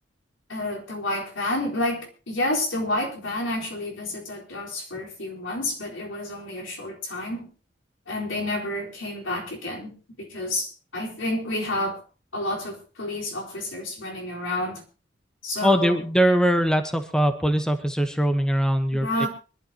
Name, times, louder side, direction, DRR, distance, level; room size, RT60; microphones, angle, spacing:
voice 1, 0.5-7.5 8.1-12.0 12.3-14.8 15.4-16.0 18.9-19.3, left 1 dB, 80° left, -1 dB, 4.1 m, -29 dB
voice 2, 15.6-19.3, equal, 5° left, 8 dB, 0.9 m, -22 dB
24.5 x 12.0 x 2.9 m, 0.34 s
head